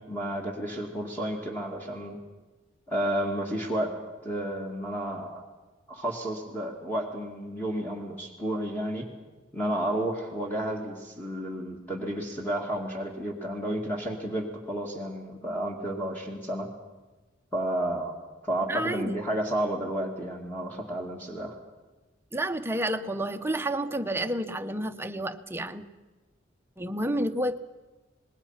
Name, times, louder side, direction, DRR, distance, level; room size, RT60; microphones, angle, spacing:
voice 1, 0.0-2.2 2.9-4.0 4.2-5.4 5.9-9.1 9.5-16.7 17.5-18.1 18.4-21.6, right 1 dB, 10° left, 0 dB, 2.2 m, -31 dB
voice 2, 18.7-19.2 22.3-25.9 26.8-27.6, right 1 dB, 15° right, 8 dB, 0.9 m, -30 dB
26.0 x 20.5 x 5.8 m, 1.2 s
head